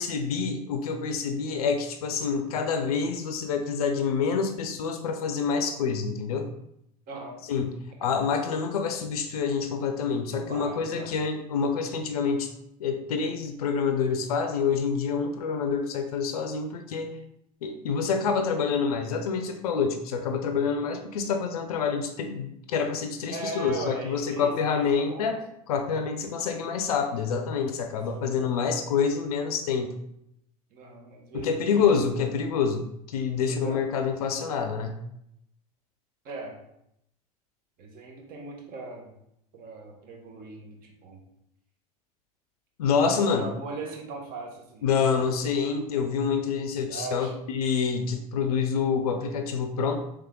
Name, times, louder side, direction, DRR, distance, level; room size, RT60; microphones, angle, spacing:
voice 1, 0.0-6.5 7.5-12.5 12.8-17.1 17.6-25.4 25.7-30.0 31.3-35.0 42.8-43.5 44.8-50.0, left 6 dB, 85° left, 6 dB, 0.5 m, -27 dB
voice 2, 7.1-7.4 8.0-8.1 10.3-11.1 23.3-25.3 28.1-28.5 30.7-32.0 33.5-33.8 36.2-36.6 37.8-39.1 39.5-41.2 42.8-45.3 46.9-47.3, right 3 dB, 50° right, 0 dB, 1.3 m, -39 dB
3.5 x 3.2 x 3.6 m, 0.78 s
hypercardioid pair, 85°, 19 cm